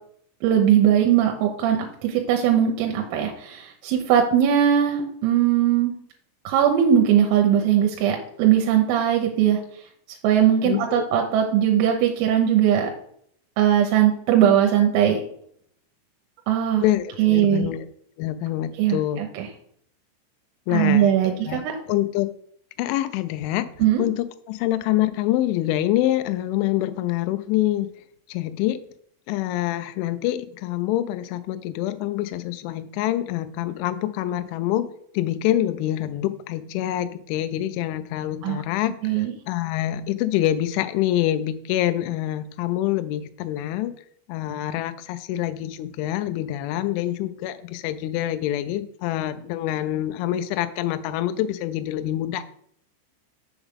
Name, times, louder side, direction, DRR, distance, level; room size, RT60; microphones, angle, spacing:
voice 1, 0.4-5.9 6.5-9.6 10.2-12.9 13.6-15.2 16.5-16.8 17.2-17.7 18.8-19.5 20.7-21.7 23.8-24.0 38.4-38.6 39.0-39.3, right 10 dB, 90° right, 2 dB, 3.5 m, -20 dB
voice 2, 10.6-11.0 16.8-17.9 18.2-19.2 20.7-21.6 21.9-22.3 22.8-23.7 24.0-27.9 28.3-28.8 29.3-34.9 35.1-43.9 44.3-52.4, left 13 dB, 85° left, 11 dB, 2.8 m, -26 dB
7.1 x 7.1 x 3.6 m, 0.66 s
omnidirectional pair, 5.9 m